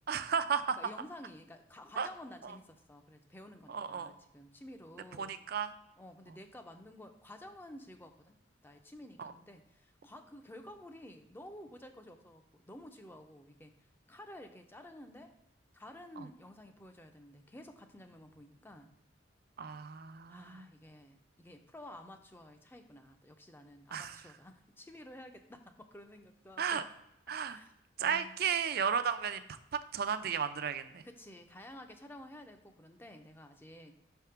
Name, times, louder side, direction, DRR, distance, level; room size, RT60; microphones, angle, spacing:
voice 1, 0.1-0.8 2.0-2.1 2.4-2.6 3.7-4.1 5.2-5.7 9.2-9.3 16.2-16.3 19.6-20.7 23.9-24.2 26.6-26.8 27.3-27.6 28.0-29.4 29.7-31.0, right 7 dB, 55° right, 11 dB, 0.4 m, -34 dB
voice 2, 0.8-5.4 6.0-8.4 8.6-13.8 14.1-15.3 15.7-18.9 20.3-26.8 27.5-27.7 28.0-28.4 31.0-34.0, left 1 dB, 10° left, 6 dB, 0.5 m, -52 dB
5.7 x 3.5 x 5.6 m, 0.83 s
head